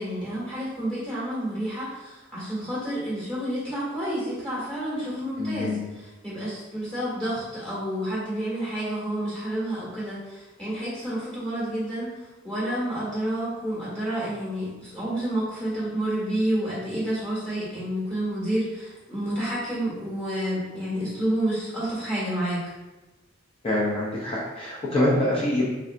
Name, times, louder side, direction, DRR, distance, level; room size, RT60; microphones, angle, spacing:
voice 1, 0.0-12.1 12.4-22.6, right 1 dB, 5° left, -10 dB, 1.5 m, -29 dB
voice 2, 5.4-5.9 23.6-25.6, left 1 dB, 30° left, -6 dB, 0.6 m, -25 dB
3.2 x 2.7 x 2.5 m, 1.1 s
head